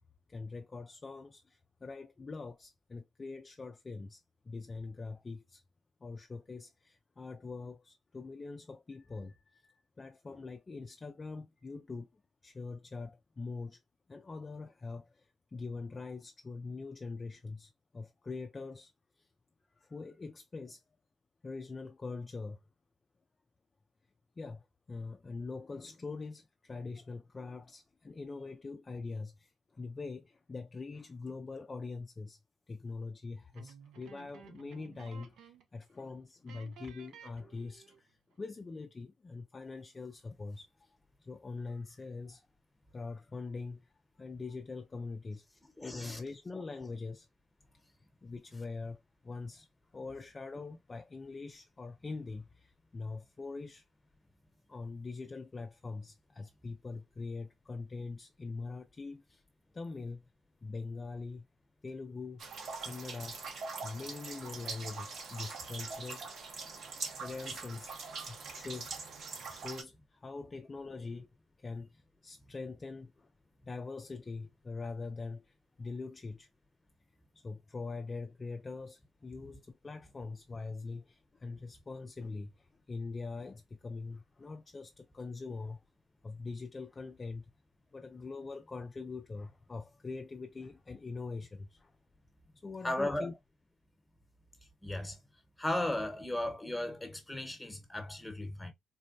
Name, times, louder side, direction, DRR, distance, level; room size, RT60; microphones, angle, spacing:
voice 1, 0.3-5.6 6.0-13.8 14.1-18.9 19.2-19.3 19.8-20.8 21.4-22.6 24.4-32.4 32.7-42.5 42.9-43.9 44.2-45.4 45.8-47.3 48.2-49.7 49.9-53.8 54.7-59.4 59.7-60.3 60.6-61.5 61.8-62.4 62.8-63.5 63.8-66.3 66.6-66.7 67.2-68.0 68.3-68.9 69.5-71.3 71.6-73.3 73.6-76.5 77.3-85.8 86.2-87.5 87.9-92.0 92.6-93.3, left 3 dB, 30° left, 0.3 m, -43 dB
sound 1, 33.5-35.7 36.0-36.1 36.5-38.1, right 7 dB, 85° right, 0.5 m, -55 dB
voice 2, 45.8-46.2 46.5-46.6 92.8-93.3 94.8-95.2 95.6-98.7, left 1 dB, 5° left, 1.0 m, -36 dB
sound 2, 62.4-69.8, right 4 dB, 65° right, 0.9 m, -43 dB
3.8 x 2.1 x 2.6 m
cardioid pair, 90°, 0 cm